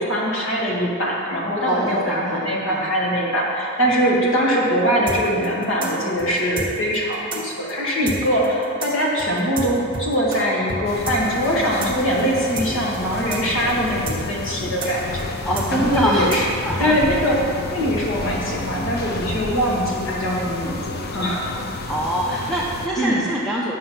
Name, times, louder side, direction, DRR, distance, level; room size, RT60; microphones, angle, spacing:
voice 1, 0.0-15.3 15.7-16.5 16.8-17.4 17.7-21.6 23.0-23.3, equal, 70° left, -4 dB, 2.0 m, -22 dB
voice 2, 1.7-2.9 15.4-16.3 16.6-17.0 21.8-23.8, right 1 dB, ahead, -5 dB, 0.6 m, -24 dB
sound 1, 5.1-10.4 10.7-10.8 11.1-16.8, right 2 dB, 25° right, 1.3 m, -30 dB
sound 2, 10.8-22.9, left 2 dB, 50° left, 0.6 m, -31 dB
8.5 x 6.5 x 5.7 m, 2.6 s
head